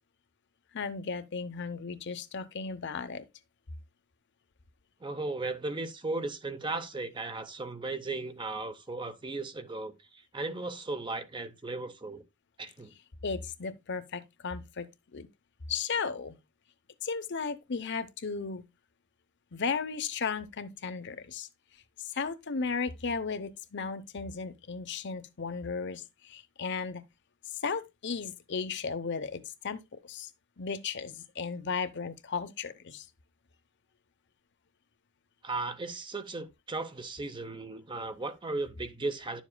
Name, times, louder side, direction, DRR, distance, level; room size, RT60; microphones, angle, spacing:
voice 1, 0.7-3.3 13.2-14.9 15.1-15.3 15.7-16.4 17.0-18.6 19.5-21.5 22.1-27.0 27.6-30.3 30.6-33.1, left 5 dB, 55° left, 0.7 m, -35 dB
voice 2, 5.0-12.2 12.6-12.9 35.4-39.4, right 3 dB, 20° right, 0.7 m, -36 dB
10.5 x 7.2 x 2.2 m
head